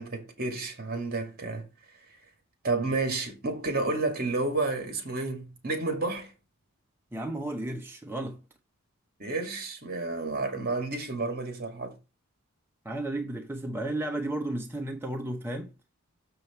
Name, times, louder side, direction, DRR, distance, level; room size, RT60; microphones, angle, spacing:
voice 1, 0.0-1.7 2.6-6.3 9.2-12.0, right 3 dB, 45° right, 2.3 m, -31 dB
voice 2, 7.1-8.4 12.8-15.7, right 1 dB, 10° right, 0.8 m, -33 dB
6.9 x 6.4 x 4.3 m
head